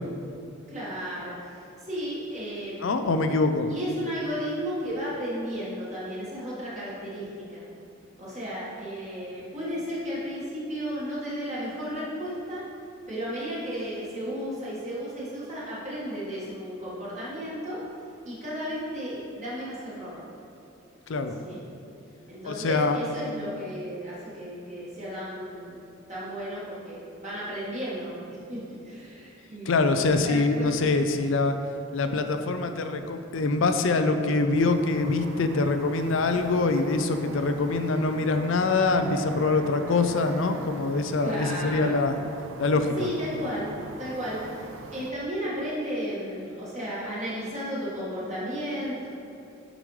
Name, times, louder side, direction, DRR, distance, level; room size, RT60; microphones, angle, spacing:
voice 1, 0.7-2.9 3.7-7.6 8.2-12.6 13.1-17.8 18.2-20.2 21.4-21.6 22.3-25.8 26.1-30.7 31.0-31.2 41.2-42.0 43.0-43.7 44.0-49.1, equal, 35° right, -9 dB, 1.6 m, -34 dB
voice 2, 2.8-3.7 21.1-21.4 22.4-23.0 29.7-31.6 31.9-42.2 42.6-43.1, left 3 dB, 65° left, 8 dB, 0.4 m, -24 dB
sound 1, 34.5-45.1, right 2 dB, 60° right, 0.5 m, -43 dB
8.9 x 5.0 x 3.2 m, 2.8 s
head